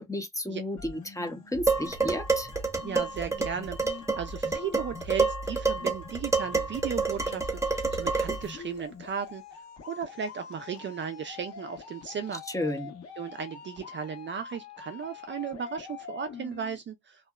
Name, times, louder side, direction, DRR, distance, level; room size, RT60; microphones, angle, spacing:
voice 1, 0.0-2.5 12.5-12.9, left 1 dB, 10° left, 0.7 m, -32 dB
sound 1, 0.8-16.8, left 3 dB, 55° left, 1.3 m, -44 dB
Dishes pots and pans, 1.7-8.5, right 4 dB, 10° right, 0.9 m, -28 dB
voice 2, 2.8-9.4 9.9-12.4 13.2-17.3, right 7 dB, 40° right, 0.4 m, -36 dB
2.7 x 2.2 x 2.2 m
cardioid pair, 90°, 30 cm